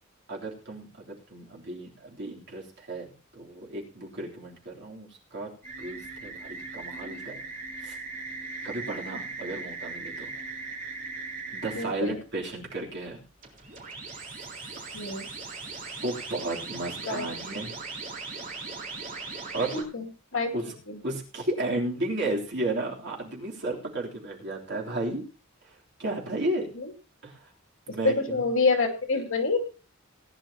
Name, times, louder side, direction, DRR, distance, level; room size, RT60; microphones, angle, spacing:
voice 1, 0.3-5.5 5.8-7.4 7.8-8.0 8.6-10.3 11.5-13.2 16.0-17.7 19.5-19.9 20.5-20.7 21.0-25.2 25.6-25.7 26.0-26.7 27.2-27.5 27.9-28.5, right 2 dB, 60° right, -2 dB, 3.4 m, -33 dB
sound 1, 5.6-11.8 13.4-19.8, right 3 dB, 40° right, 4.1 m, -39 dB
voice 2, 11.8-12.1 14.9-15.3 17.1-17.3 19.7-20.1 20.3-21.0 26.7-26.9 28.0-29.6, left 3 dB, 80° left, 3 dB, 2.5 m, -27 dB
19.0 x 10.5 x 2.9 m, 0.34 s
head